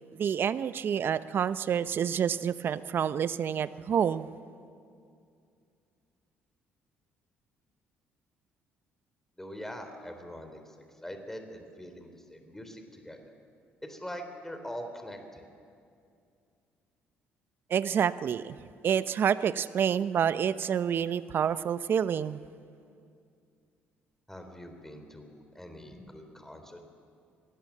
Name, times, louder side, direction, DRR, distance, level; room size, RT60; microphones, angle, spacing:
voice 1, 0.1-4.3 17.7-18.6 18.8-22.4, right 8 dB, 55° right, 15 dB, 0.8 m, -28 dB
voice 2, 9.4-13.3 13.8-15.4 24.3-26.8, equal, 10° left, 6 dB, 3.7 m, -43 dB
26.0 x 17.5 x 7.5 m, 2.4 s
supercardioid pair, 65°, 5 cm